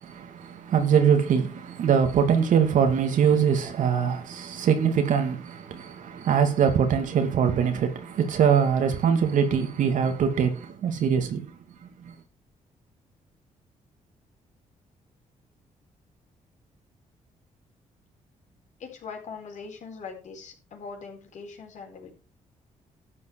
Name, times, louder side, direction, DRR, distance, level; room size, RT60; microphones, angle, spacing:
voice 1, 0.0-11.4 12.0-12.1, right 7 dB, 75° right, 2.4 m, -23 dB
voice 2, 18.8-22.1, left 5 dB, 65° left, 4.4 m, -41 dB
12.5 x 7.9 x 4.8 m
cardioid pair, 105°, 13 cm